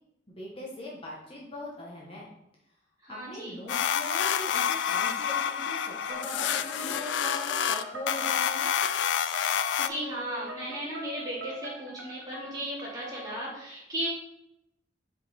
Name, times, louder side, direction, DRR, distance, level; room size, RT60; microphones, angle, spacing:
voice 1, 0.3-2.3 3.1-8.7, left 1 dB, 30° left, -4 dB, 1.2 m, -40 dB
voice 2, 3.0-3.6 9.5-14.1, equal, 20° right, -6 dB, 2.4 m, -36 dB
sound 1, 3.7-9.9, left 8 dB, 70° left, 0.3 m, -28 dB
sound 2, 6.1-13.5, right 1 dB, 80° right, 1.3 m, -43 dB
5.2 x 5.2 x 4.3 m, 0.82 s
head